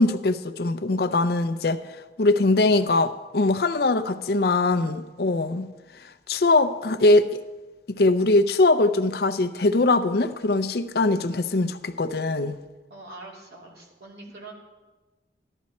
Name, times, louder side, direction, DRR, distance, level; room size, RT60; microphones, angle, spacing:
voice 1, 0.0-1.8 2.2-5.7 6.0-7.4 7.9-12.6, left 2 dB, 60° left, 9 dB, 0.6 m, -22 dB
voice 2, 12.9-14.5, right 2 dB, 60° right, -2 dB, 2.9 m, -43 dB
14.0 x 11.5 x 4.2 m, 1.2 s
head